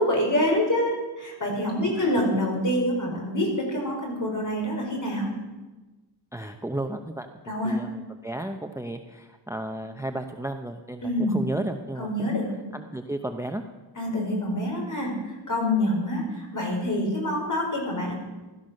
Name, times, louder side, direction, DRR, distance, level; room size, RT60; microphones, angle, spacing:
voice 1, 0.0-5.3 7.4-7.8 11.0-11.3 12.0-12.5 14.0-15.1 15.5-18.1, left 1 dB, 40° left, 0 dB, 4.8 m, -26 dB
voice 2, 6.3-7.3 7.6-12.4 12.7-13.6, right 1 dB, 5° right, 6 dB, 0.7 m, -33 dB
16.0 x 12.5 x 6.5 m, 1.2 s
wide cardioid pair, 150°, 45 cm